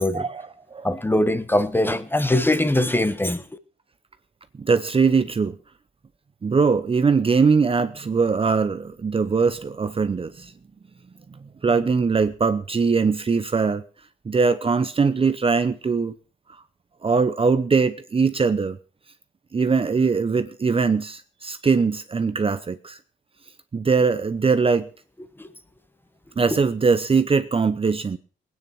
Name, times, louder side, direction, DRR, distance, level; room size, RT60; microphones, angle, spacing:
voice 1, 0.1-0.9 4.6-5.6 6.4-10.5 11.6-13.8 14.3-16.1 17.0-18.8 19.5-23.0 23.7-24.9 26.4-28.2, right 5 dB, 30° right, 0.8 m, -21 dB
voice 2, 0.8-3.4 25.4-25.5, left 1 dB, 10° left, 1.2 m, -21 dB
18.5 x 9.5 x 6.0 m
cardioid pair, 90°, 20 cm